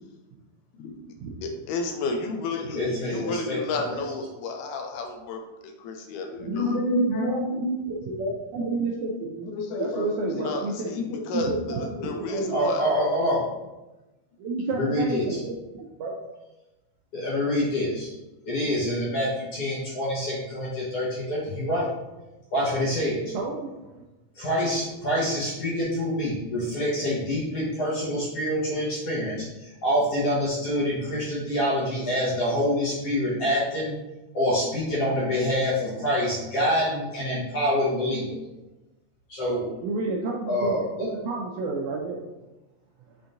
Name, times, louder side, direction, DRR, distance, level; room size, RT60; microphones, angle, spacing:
voice 1, 1.4-8.7 9.5-13.2, left 3 dB, 80° left, 4 dB, 2.0 m, -31 dB
voice 2, 2.7-3.6 3.9-4.0 12.5-13.4 14.7-15.4 17.1-18.1 18.5-21.9 22.5-23.3 24.4-34.0 34.3-38.2 39.3-39.7 40.5-40.8, equal, 65° left, -7 dB, 1.7 m, -26 dB
voice 3, 6.4-9.5 9.8-10.9 11.3-12.7 14.4-15.6 16.0-16.1 23.3-23.7 39.8-42.2, right 3 dB, 80° right, -1 dB, 1.7 m, -30 dB
5.7 x 3.6 x 2.5 m, 1.1 s
omnidirectional pair, 3.8 m